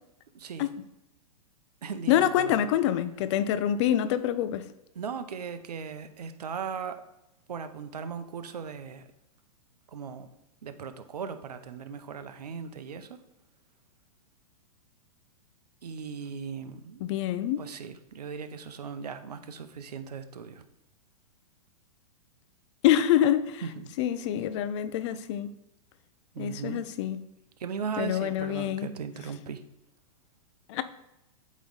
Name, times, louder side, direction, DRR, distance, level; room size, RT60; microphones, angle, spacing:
voice 1, 0.3-0.7 1.8-2.6 4.9-7.0 7.5-9.0 9.9-10.3 10.6-13.2 15.8-17.0 17.6-20.6 23.6-23.9 26.3-26.8 27.6-29.6, right 6 dB, 90° right, 0.7 m, -38 dB
voice 2, 2.1-4.7 17.1-17.6 22.8-23.6 24.0-25.5 26.4-27.2 28.0-28.9 30.7-30.8, left 11 dB, 50° left, 0.6 m, -26 dB
8.2 x 3.2 x 4.0 m
hypercardioid pair, 125°, 20 cm